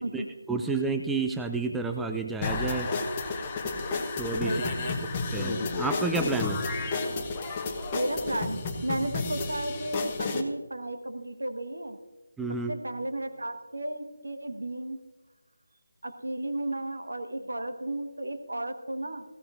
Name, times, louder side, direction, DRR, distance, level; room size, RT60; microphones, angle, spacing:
voice 1, 0.1-2.9 4.2-4.5 5.3-6.6 12.4-12.7, right 3 dB, 5° right, 4 dB, 0.4 m, -30 dB
sound 1, 2.4-10.4, left 3 dB, 20° left, 1.1 m, -31 dB
voice 2, 4.4-5.0 7.9-12.0 12.7-15.0 16.0-19.2, right 1 dB, 65° right, 7 dB, 1.4 m, -34 dB
18.5 x 16.0 x 2.6 m, 1.3 s
figure-of-eight pair, 160°, 0 cm